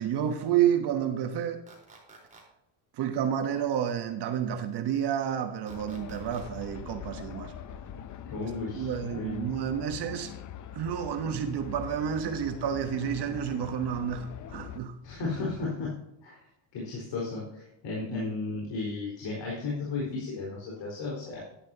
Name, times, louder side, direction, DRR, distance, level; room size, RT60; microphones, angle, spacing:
voice 1, 0.0-1.6 2.9-7.5 8.7-10.3 10.7-15.0 18.1-18.3, right 9 dB, 55° right, 1.1 m, -30 dB
sound 1, 1.7-2.4 5.7-6.4, right 3 dB, 15° right, 4.1 m, -52 dB
sound 2, 5.7-14.8, left 9 dB, 35° left, 0.6 m, -43 dB
voice 2, 8.3-9.4 15.0-15.9 16.2-16.4 16.7-21.4, left 3 dB, 60° left, 4.5 m, -34 dB
11.5 x 11.0 x 2.8 m
cardioid pair, 125°, 49 cm